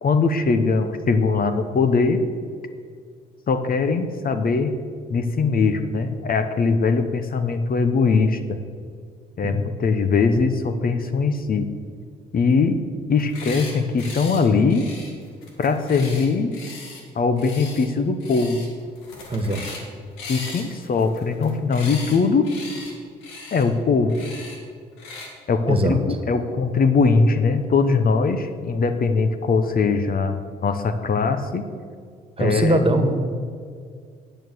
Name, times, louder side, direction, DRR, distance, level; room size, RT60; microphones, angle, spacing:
voice 1, 0.0-2.2 3.5-4.7 5.1-8.6 9.4-11.7 12.3-12.8 13.1-14.9 15.6-16.5 17.1-18.6 20.3-22.5 23.5-24.1 25.5-31.6 32.4-32.8, left 4 dB, 50° left, 9 dB, 1.0 m, -21 dB
sound 1, 13.2-13.7 14.0-14.4 14.7-17.0 17.4-17.9 18.2-18.7 18.9-19.9 20.2-22.2 22.4-22.9 23.2-23.6 24.1-24.6 25.0-25.3, left 3 dB, 90° left, 1.9 m, -38 dB
voice 2, 19.3-19.6 25.7-26.0 32.4-33.1, right 1 dB, 30° right, 7 dB, 1.6 m, -21 dB
9.1 x 9.1 x 6.3 m, 2.1 s
supercardioid pair, 60°, 20 cm